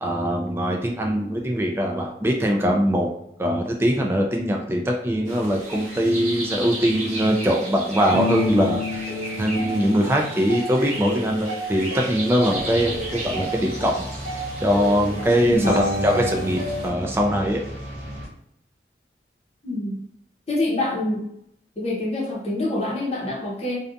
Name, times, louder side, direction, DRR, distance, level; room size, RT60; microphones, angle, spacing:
voice 1, 0.0-3.1 3.4-9.1 9.4-14.1 14.6-17.6, equal, 15° right, 1 dB, 0.3 m, -22 dB
sound 1, 5.3-16.9, equal, 40° right, 0.9 m, -30 dB
sound 2, 12.4-18.3, equal, 15° left, 1.0 m, -36 dB
voice 2, 15.5-15.8 19.6-20.0 20.5-21.2 21.8-23.8, left 1 dB, 35° left, -4 dB, 0.8 m, -26 dB
2.5 x 2.2 x 2.5 m, 0.75 s
head